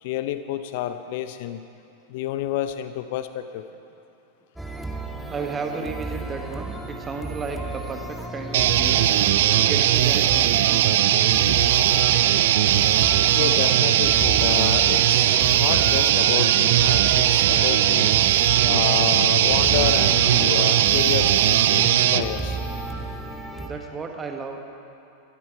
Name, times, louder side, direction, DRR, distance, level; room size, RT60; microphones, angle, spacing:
voice 1, 0.0-1.6 2.1-3.6 13.3-18.1 18.6-22.6, left 11 dB, 50° left, 11 dB, 0.6 m, -29 dB
sound 1, 4.6-23.7, right 2 dB, 5° right, 1.4 m, -33 dB
voice 2, 5.3-9.0 9.6-11.0 23.6-24.6, right 4 dB, 20° right, 4 dB, 1.5 m, -33 dB
sound 2, 8.5-22.2, right 12 dB, 55° right, 0.4 m, -19 dB
17.0 x 14.0 x 4.6 m, 2.6 s
figure-of-eight pair, 90°, 0 cm